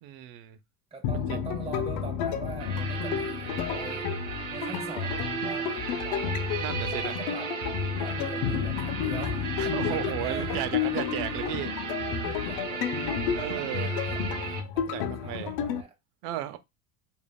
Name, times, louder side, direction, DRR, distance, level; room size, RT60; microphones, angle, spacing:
voice 1, 0.0-0.6 1.3-1.4 6.6-7.2 9.6-11.7 13.3-13.9 14.9-15.5 16.2-16.6, right 12 dB, 80° right, 0.7 m, -34 dB
voice 2, 0.9-4.1 4.5-6.4 6.9-7.7 8.0-11.0 11.6-11.8 12.2-15.9, right 4 dB, 15° right, 0.8 m, -43 dB
sound 1, 1.0-15.8, left 8 dB, 70° left, 0.7 m, -31 dB
sound 2, 2.6-14.6, right 5 dB, 50° right, 1.4 m, -35 dB
5.0 x 2.6 x 2.3 m
cardioid pair, 155°, 40 cm